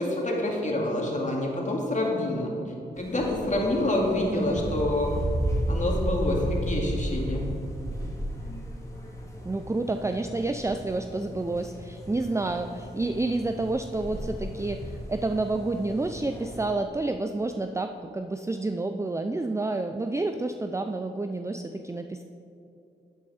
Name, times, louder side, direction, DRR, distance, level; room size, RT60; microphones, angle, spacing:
voice 1, 0.0-2.5 3.0-5.1 5.4-7.4, left 1 dB, 40° left, -1 dB, 2.4 m, -27 dB
sound 1, 3.0-16.6, right 1 dB, 15° left, 2.4 m, -34 dB
voice 2, 4.3-4.7 9.4-22.2, right 2 dB, 15° right, 7 dB, 0.4 m, -29 dB
9.7 x 8.4 x 4.3 m, 2.7 s
supercardioid pair, 45°, 19 cm